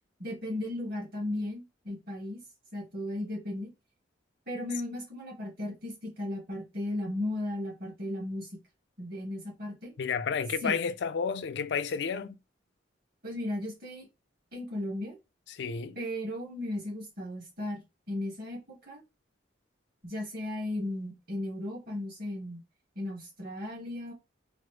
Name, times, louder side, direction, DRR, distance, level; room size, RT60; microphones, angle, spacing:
voice 1, 0.2-2.4 2.7-3.7 4.5-8.5 9.0-9.9 10.6-10.7 13.2-14.1 14.5-15.2 15.9-17.8 18.1-19.0 20.0-22.6 22.9-24.1, left 1 dB, 55° right, 1.7 m, -35 dB
voice 2, 10.0-12.4 15.5-16.0, left 6 dB, 65° left, 0.4 m, -31 dB
3.8 x 2.0 x 3.2 m
head